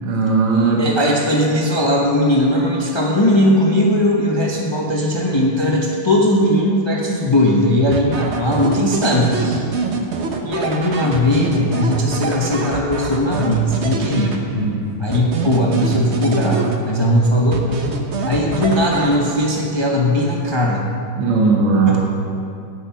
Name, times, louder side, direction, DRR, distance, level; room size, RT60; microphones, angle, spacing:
voice 1, 0.0-0.8 14.5-14.8 21.2-22.0, right 4 dB, 75° right, -2 dB, 2.0 m, -17 dB
voice 2, 0.8-9.6 10.4-14.4 15.0-17.8 18.3-20.8 21.9-22.0, left 1 dB, 40° left, -2 dB, 0.4 m, -18 dB
sound 1, 7.9-14.8 15.1-17.1 17.5-19.6, right 4 dB, 55° right, 0.8 m, -25 dB
10.0 x 9.1 x 5.8 m, 2.5 s
omnidirectional pair, 2.3 m